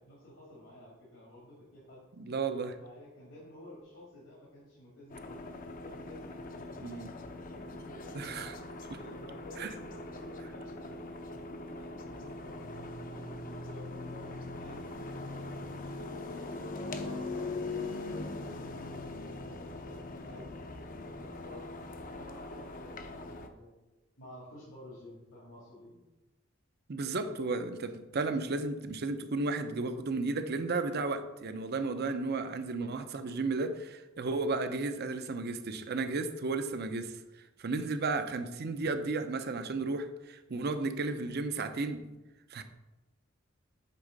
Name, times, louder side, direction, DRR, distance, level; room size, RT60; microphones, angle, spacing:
voice 1, 0.0-2.0 2.5-6.7 7.5-11.1 11.5-16.2 16.7-21.7 22.0-23.7 24.2-26.0, left 1 dB, 80° left, -7 dB, 2.3 m, -52 dB
voice 2, 2.2-2.7 6.8-7.1 8.1-8.5 9.6-9.7 26.9-37.2 37.6-42.1 42.5-42.6, right 3 dB, 55° right, 9 dB, 0.6 m, -33 dB
sound 1, 5.1-23.5, left 2 dB, 45° left, 0.6 m, -41 dB
8.3 x 3.6 x 5.2 m, 1.0 s
head